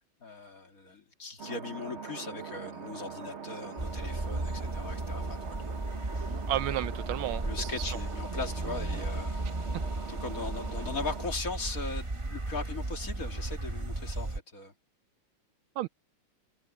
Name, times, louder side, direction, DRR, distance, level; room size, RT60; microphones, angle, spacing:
voice 1, 0.2-5.7 7.3-9.5 10.1-14.7, left 4 dB, 40° left, 2.6 m, -39 dB
sound 1, 1.4-11.3, right 6 dB, 45° right, 1.0 m, -42 dB
sound 2, 3.8-14.4, right 2 dB, 25° right, 0.7 m, -35 dB
voice 2, 6.5-7.9 15.8-15.9, right 14 dB, 75° right, 1.3 m, -32 dB
omnidirectional pair, 2.4 m